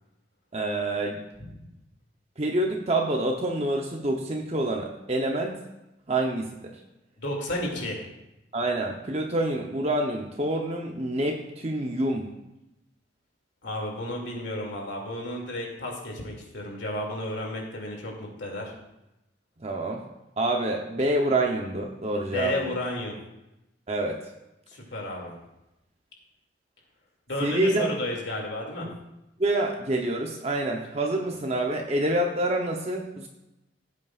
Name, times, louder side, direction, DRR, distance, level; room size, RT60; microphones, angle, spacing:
voice 1, 0.5-1.2 2.4-5.6 6.1-6.7 8.5-12.3 19.6-20.0 20.4-22.7 23.9-24.2 27.4-27.9 28.8-28.9 29.4-33.3, right 1 dB, 35° right, 1 dB, 0.8 m, -27 dB
voice 2, 7.2-8.0 13.6-18.7 22.3-23.2 24.7-25.3 27.3-28.9, left 1 dB, 85° left, 0 dB, 2.5 m, -32 dB
16.0 x 8.4 x 2.5 m, 0.93 s
head